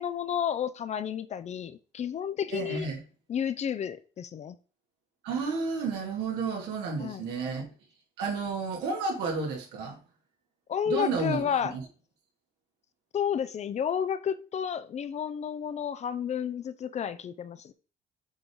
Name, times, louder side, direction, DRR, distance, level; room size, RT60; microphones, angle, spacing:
voice 1, 0.0-2.9 3.3-4.6 7.0-7.3 10.7-11.8 13.1-17.7, left 8 dB, 40° left, 0.6 m, -31 dB
voice 2, 2.5-3.0 5.2-7.7 8.2-10.0 10.9-11.4, right 4 dB, 90° right, 2.7 m, -31 dB
7.7 x 3.8 x 4.7 m
cardioid pair, 110°, 17 cm